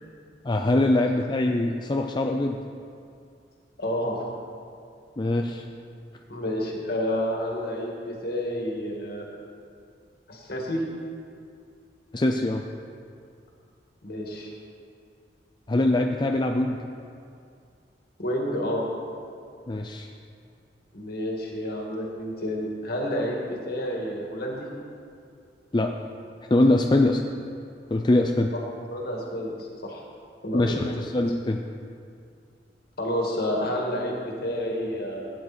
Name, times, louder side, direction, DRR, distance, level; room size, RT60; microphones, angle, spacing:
voice 1, 0.4-2.6 5.2-5.7 12.1-12.6 15.7-16.8 19.7-20.1 25.7-26.0 26.5-27.2 27.9-28.5 30.5-31.6, left 1 dB, 25° left, 3 dB, 0.5 m, -23 dB
voice 2, 3.8-4.2 5.4-5.5 6.3-9.3 10.3-10.8 14.0-14.5 18.2-18.8 20.9-24.7 28.9-30.0 30.4-30.8 33.0-35.3, equal, 60° left, -1 dB, 2.4 m, -29 dB
16.5 x 9.3 x 4.4 m, 2.4 s
head